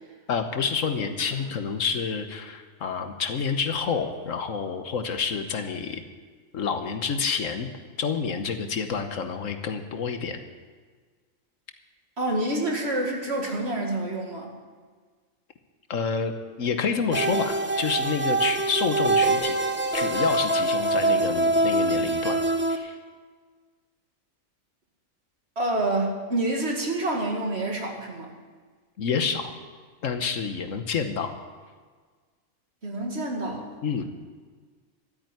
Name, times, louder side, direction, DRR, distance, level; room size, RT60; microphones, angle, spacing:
voice 1, 0.3-6.0 6.5-7.7 8.0-10.4 15.9-16.3 16.6-19.6 19.9-22.4 22.7-23.0 29.0-29.5 30.0-31.3 33.8-34.0, left 6 dB, 70° left, 7 dB, 1.4 m, -28 dB
voice 2, 12.2-14.5 25.6-28.3 32.8-33.7, right 2 dB, 50° right, 0 dB, 2.4 m, -28 dB
sound 1, 17.1-22.8, right 2 dB, 10° right, 0.9 m, -24 dB
13.0 x 9.0 x 9.3 m, 1.5 s
omnidirectional pair, 1.4 m